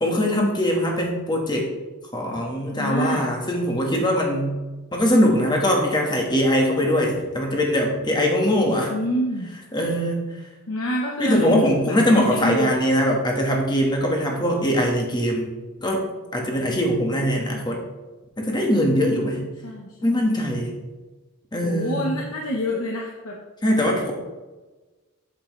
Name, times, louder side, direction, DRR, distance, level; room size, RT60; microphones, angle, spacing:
voice 1, 0.0-1.7 2.1-4.5 4.9-8.9 9.7-10.2 11.2-15.5 15.8-16.0 16.3-17.8 18.4-19.4 20.0-20.7 21.5-22.0 23.6-24.1, equal, 20° left, 0 dB, 1.4 m, -21 dB
voice 2, 2.7-3.2 8.9-9.5 10.7-12.7 17.1-17.8 19.6-20.2 21.6-23.4, equal, 75° left, -1 dB, 1.0 m, -27 dB
8.4 x 7.7 x 3.2 m, 1.2 s
head